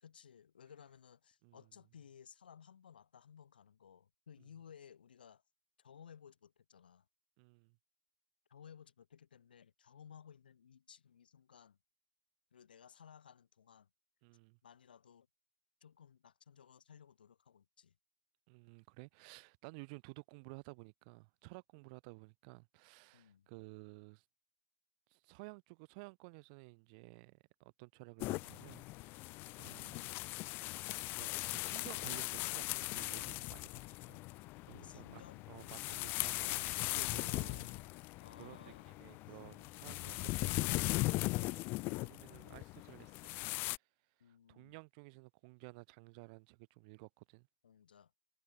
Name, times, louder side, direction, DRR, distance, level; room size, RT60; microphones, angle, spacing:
voice 1, 0.0-5.4 5.8-7.1 8.5-11.8 12.5-13.9 14.6-15.3 15.8-18.0 23.1-23.5 29.9-30.1 34.8-35.4 37.5-39.5 44.2-44.8 47.6-48.1, left 8 dB, 80° left, 2.6 m, -59 dB
voice 2, 7.4-7.8 14.2-14.6 18.5-24.2 25.1-30.0 31.1-34.2 34.7-35.2 35.5-37.7 38.4-43.4 44.3-47.5, right 31 dB, 55° right, 2.2 m, -55 dB
sound 1, 28.2-43.8, left 22 dB, 45° left, 0.4 m, -39 dB
sound 2, 28.3-41.9, left 19 dB, 60° left, 6.4 m, -76 dB
hypercardioid pair, 100°, 5 cm